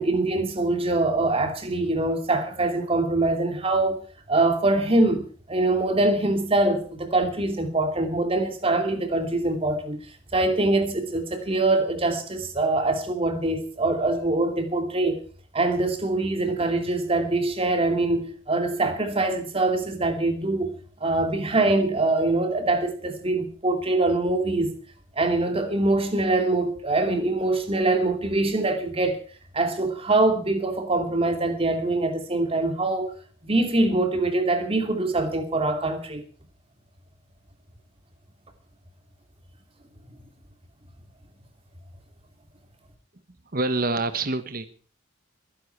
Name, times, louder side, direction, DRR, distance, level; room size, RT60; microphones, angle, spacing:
voice 1, 0.0-4.0 4.3-10.0 10.3-15.2 15.5-20.7 21.0-24.8 25.2-29.2 29.5-33.1 33.4-36.2, right 2 dB, 30° right, 2.7 m, -24 dB
voice 2, 43.5-44.6, right 3 dB, 45° right, 1.2 m, -26 dB
22.0 x 10.5 x 4.6 m
head